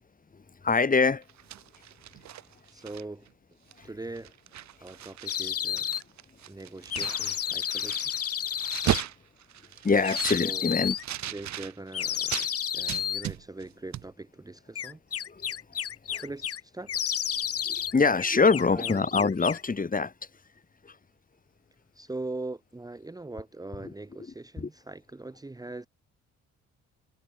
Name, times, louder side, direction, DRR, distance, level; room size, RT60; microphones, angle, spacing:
voice 1, 0.3-1.2 3.8-3.9 9.8-11.0 15.3-15.5 16.1-16.2 17.6-20.1 20.8-21.0 23.8-23.9 24.6-24.7, left 4 dB, 30° left, 2.9 m, -25 dB
sound 1, 1.2-3.3 3.7-3.9 4.1-5.4 5.7-12.5 12.9-13.7 13.9-14.1, right 12 dB, 65° right, 1.5 m, -36 dB
voice 2, 2.7-3.3 3.8-4.3 4.8-5.9 6.5-8.1 8.8-9.1 10.4-10.7 11.3-12.5 12.7-15.0 16.1-16.9 18.7-19.1 21.9-25.9, right 2 dB, 10° right, 1.3 m, -41 dB
sound 2, 5.3-6.0 6.9-9.0 10.0-11.0 11.9-13.3 14.7-16.6 16.9-17.9 18.2-19.7, left 9 dB, 50° left, 1.4 m, -31 dB
cardioid pair, 90°, 30 cm